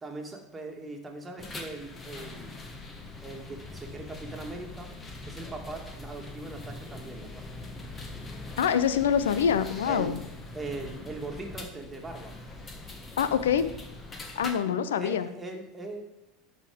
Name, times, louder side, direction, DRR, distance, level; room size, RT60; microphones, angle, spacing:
voice 1, 0.0-2.6 3.2-4.9 5.3-7.5 9.8-10.2 10.5-12.4 14.6-16.0, right 2 dB, 20° right, 2 dB, 1.9 m, -40 dB
sound 1, 1.4-14.5, left 2 dB, 25° left, 1.5 m, -42 dB
voice 2, 8.6-10.2 13.2-13.7 14.4-15.3, left 8 dB, 75° left, 13 dB, 0.6 m, -25 dB
11.0 x 4.4 x 5.1 m, 0.90 s
hypercardioid pair, 80°, 0 cm